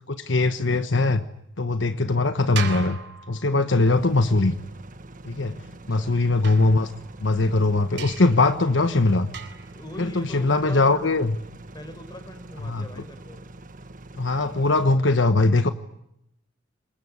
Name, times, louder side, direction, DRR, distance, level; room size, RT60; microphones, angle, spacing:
voice 1, 0.1-1.3 1.6-3.0 3.3-4.5 5.2-5.6 5.9-6.9 7.2-9.3 10.0-11.3 12.6-12.8 14.2-15.7, left 2 dB, 75° left, 10 dB, 1.2 m, -21 dB
sound 1, 2.6-3.9 6.4-7.3 8.0-8.5 9.3-9.8, right 7 dB, 65° right, 3.9 m, -37 dB
sound 2, 3.8-15.0, right 2 dB, 45° right, 1.5 m, -44 dB
voice 2, 5.7-6.2 9.7-11.1 11.7-13.4, left 1 dB, 20° left, 10 dB, 4.6 m, -41 dB
26.5 x 22.5 x 9.7 m, 0.79 s
head